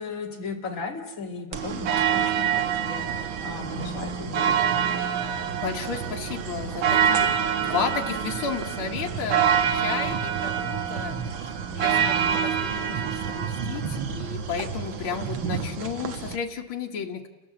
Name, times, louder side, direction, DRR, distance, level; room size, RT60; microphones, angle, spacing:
voice 1, 0.0-4.7, left 4 dB, 40° left, 2 dB, 2.5 m, -36 dB
sound 1, 1.5-16.4, right 8 dB, 75° right, 2.0 m, -26 dB
voice 2, 5.6-7.3 7.6-11.5 11.7-17.3, left 6 dB, 85° left, 2 dB, 2.2 m, -33 dB
29.5 x 16.5 x 7.8 m, 1.2 s
omnidirectional pair, 2.2 m